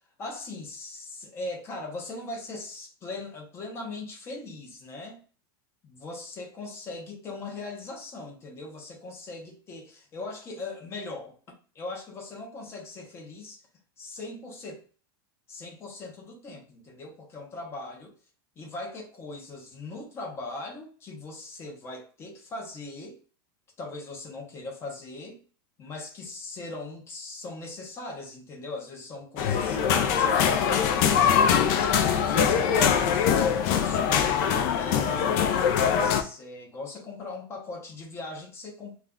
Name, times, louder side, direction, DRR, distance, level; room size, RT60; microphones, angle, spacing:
voice 1, 0.2-5.2 5.8-11.4 11.7-13.6 14.0-14.8 15.5-18.1 18.6-23.2 23.8-25.4 25.8-31.4 31.8-34.3 34.7-38.9, left 2 dB, 20° left, 1 dB, 0.7 m, -40 dB
sound 1, 29.4-36.2, left 7 dB, 50° left, 0.4 m, -23 dB
2.4 x 2.2 x 3.5 m, 0.41 s
supercardioid pair, 155°, 12 cm